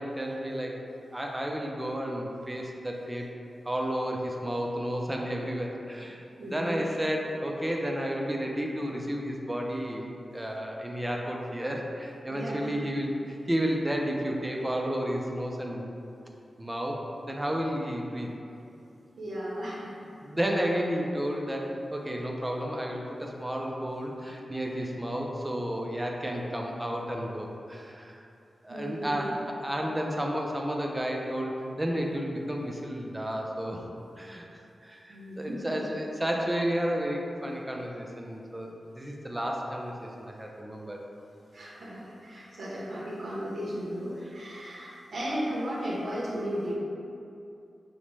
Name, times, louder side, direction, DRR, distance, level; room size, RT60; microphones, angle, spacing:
voice 1, 0.0-3.3 3.6-6.2 6.5-10.1 10.3-13.1 13.5-15.9 16.6-18.3 20.2-28.2 28.6-33.8 34.2-34.5 34.8-41.0 42.3-42.5, equal, 10° right, 0 dB, 0.3 m, -32 dB
voice 2, 6.4-6.8 12.3-12.7 19.2-20.0 28.7-29.3 35.1-35.8 41.5-46.7, equal, 55° right, -7 dB, 0.6 m, -35 dB
5.1 x 2.1 x 3.0 m, 2.7 s
wide cardioid pair, 155°, 0 cm